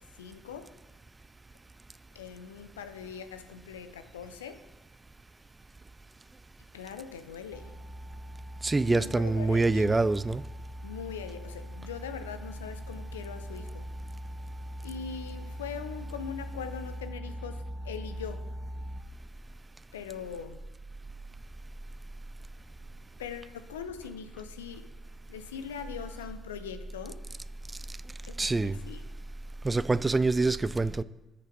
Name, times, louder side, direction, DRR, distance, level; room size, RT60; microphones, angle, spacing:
voice 1, 0.2-0.7 2.1-4.6 6.7-7.7 8.9-10.1 10.8-13.8 14.8-18.5 19.9-20.6 23.2-24.9 25.3-27.2 28.2-28.3 28.6-29.0, left 7 dB, 85° left, 0.4 m, -41 dB
sound 1, 7.5-19.0, equal, 10° left, 0.8 m, -41 dB
voice 2, 8.6-10.4 28.4-28.8 29.6-31.0, right 3 dB, 25° right, 0.3 m, -25 dB
6.1 x 5.7 x 5.2 m
hypercardioid pair, 50°, 0 cm